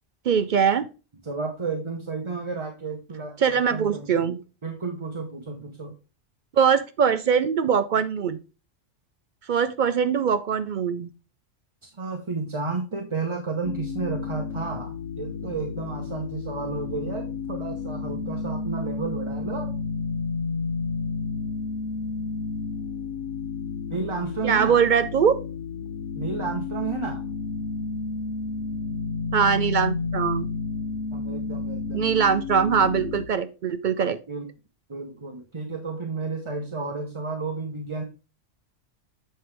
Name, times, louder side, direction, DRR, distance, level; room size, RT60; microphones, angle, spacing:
voice 1, 0.3-0.9 3.4-4.4 6.5-8.4 9.5-11.1 24.4-25.4 29.3-30.5 31.9-34.2, right 7 dB, 60° right, 12 dB, 0.5 m, -22 dB
voice 2, 1.2-4.3 4.6-5.9 11.8-19.7 23.9-24.8 26.1-27.2 31.1-32.1 34.3-34.5 34.9-38.0, right 4 dB, 30° right, 2 dB, 0.8 m, -32 dB
sound 1, 13.6-33.3, left 4 dB, 80° left, 1.1 m, -31 dB
7.6 x 5.6 x 3.3 m, 0.32 s
omnidirectional pair, 1.3 m